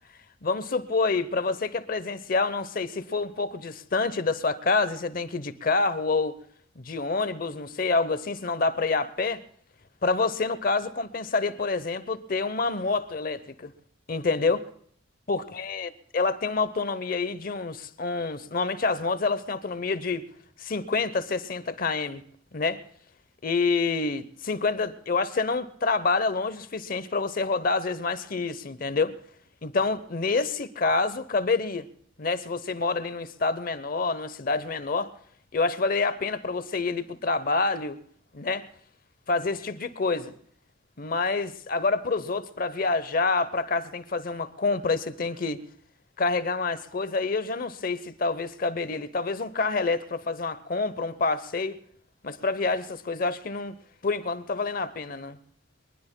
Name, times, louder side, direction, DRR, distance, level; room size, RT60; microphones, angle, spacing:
voice 1, 0.4-6.4 6.8-9.4 10.0-13.7 14.1-14.6 15.3-20.3 20.6-22.2 22.5-22.8 23.4-29.1 29.6-31.8 32.2-35.1 35.5-38.0 38.3-38.7 39.3-40.3 41.0-45.6 46.2-51.8 52.2-53.8 54.0-55.4, left 3 dB, 45° left, 0.7 m, -27 dB
24.5 x 20.0 x 2.2 m
head